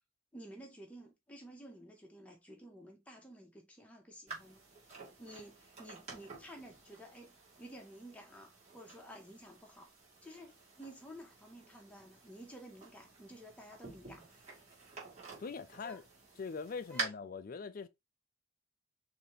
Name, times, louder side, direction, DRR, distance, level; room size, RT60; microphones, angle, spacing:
voice 1, 0.3-4.6 5.2-9.9 10.2-14.4 15.8-16.0 16.9-17.1, equal, 5° left, 0.9 m, -52 dB
sound 1, 4.3-17.0, right 3 dB, 30° right, 1.4 m, -49 dB
voice 2, 15.4-16.0 16.4-17.9, left 5 dB, 40° left, 0.4 m, -42 dB
3.9 x 2.8 x 3.1 m
head